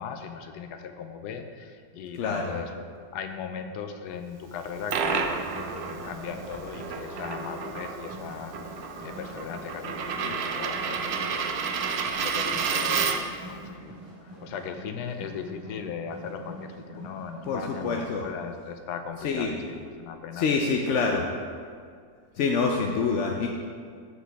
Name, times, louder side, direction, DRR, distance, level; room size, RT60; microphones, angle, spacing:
voice 1, 0.0-2.7 3.1-8.5 9.0-14.0 14.2-21.0 21.3-21.4 22.4-22.5, left 7 dB, 80° left, 7 dB, 1.2 m, -38 dB
voice 2, 2.1-2.6 17.5-18.2 19.2-19.6 20.3-21.3 22.3-23.5, left 4 dB, 65° left, 1 dB, 0.7 m, -26 dB
Coin (dropping), 4.5-13.4, right 5 dB, 80° right, 0.5 m, -31 dB
sound 1, 5.1-17.8, right 1 dB, 30° right, 1.8 m, -45 dB
13.0 x 4.8 x 3.4 m, 2.1 s
omnidirectional pair, 1.7 m